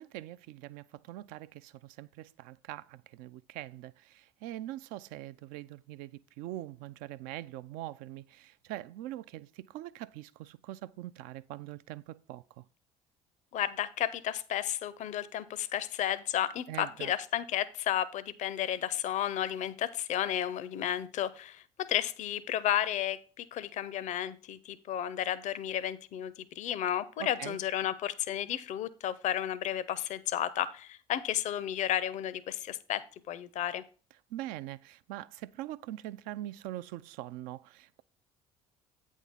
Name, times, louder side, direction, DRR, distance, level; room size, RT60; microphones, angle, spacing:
voice 1, 0.0-12.6 16.7-17.1 27.2-27.6 34.3-38.0, right 14 dB, 70° right, 0.4 m, -43 dB
voice 2, 13.5-33.8, left 11 dB, 55° left, 0.5 m, -33 dB
8.3 x 3.6 x 5.5 m
hypercardioid pair, 60°, 15 cm